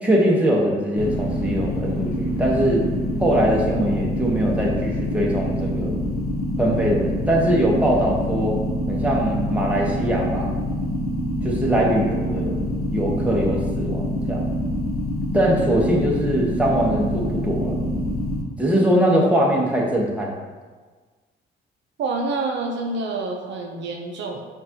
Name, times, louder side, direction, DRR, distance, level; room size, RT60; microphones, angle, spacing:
voice 1, 0.0-2.9 3.2-6.0 6.6-8.6 8.9-10.5 11.4-12.6 12.9-14.5 15.3-17.8 18.6-20.4, right 1 dB, 5° right, -3 dB, 1.0 m, -21 dB
sound 1, 1.0-18.4, equal, 50° left, 0.9 m, -25 dB
voice 2, 22.0-24.5, right 3 dB, 65° right, 1 dB, 0.6 m, -27 dB
6.7 x 2.6 x 2.8 m, 1.4 s
cardioid pair, 90°, 20 cm